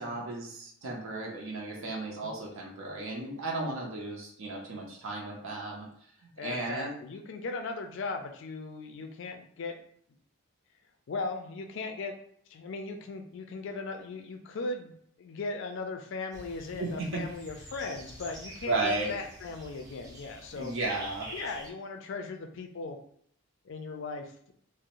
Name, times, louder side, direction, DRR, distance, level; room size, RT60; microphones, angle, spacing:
voice 1, 0.0-5.9 6.2-6.9 16.8-17.3 18.6-19.1 20.5-21.3, right 2 dB, 70° right, -1 dB, 0.6 m, -34 dB
voice 2, 6.4-9.8 11.1-12.1 12.5-20.7 21.3-23.0 23.6-24.3, left 3 dB, 60° left, 5 dB, 0.4 m, -38 dB
sound 1, 16.3-21.7, right 1 dB, 15° right, 0.5 m, -47 dB
2.5 x 2.0 x 2.9 m, 0.63 s
head